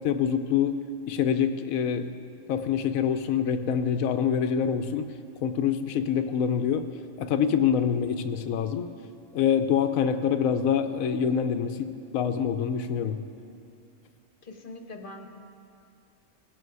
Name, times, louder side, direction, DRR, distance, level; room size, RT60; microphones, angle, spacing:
voice 1, 0.0-2.1 2.5-5.1 5.4-6.9 7.2-8.9 9.3-13.2, left 7 dB, 85° left, 9 dB, 1.1 m, -26 dB
voice 2, 14.4-15.3, left 2 dB, 40° left, 4 dB, 1.1 m, -42 dB
19.0 x 7.8 x 4.7 m, 2.5 s
omnidirectional pair, 1.4 m